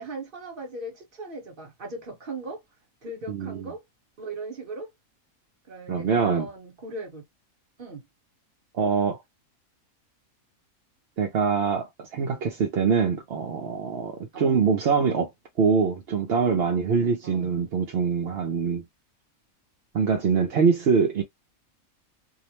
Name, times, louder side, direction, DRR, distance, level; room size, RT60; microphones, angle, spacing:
voice 1, 0.0-2.6 3.0-3.8 4.2-4.9 5.7-7.2 7.8-8.0 14.3-14.6 17.2-17.6, right 2 dB, 40° right, 1.2 m, -38 dB
voice 2, 3.3-3.7 5.9-6.5 8.7-9.2 11.2-15.3 15.6-18.8 19.9-21.2, right 5 dB, 60° right, 0.7 m, -24 dB
2.7 x 2.1 x 2.9 m
omnidirectional pair, 1.5 m